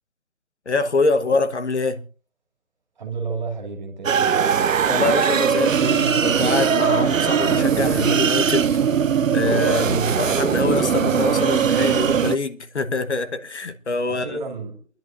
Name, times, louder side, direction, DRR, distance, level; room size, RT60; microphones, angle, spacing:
voice 1, 0.7-2.0 4.9-8.7 9.3-14.4, left 3 dB, 55° left, 1.1 m, -24 dB
voice 2, 3.0-4.7 14.1-14.8, right 4 dB, 35° right, 2.5 m, -31 dB
sound 1, 4.0-12.4, right 7 dB, 70° right, 0.6 m, -20 dB
28.5 x 10.5 x 2.5 m
figure-of-eight pair, 160°, 40 cm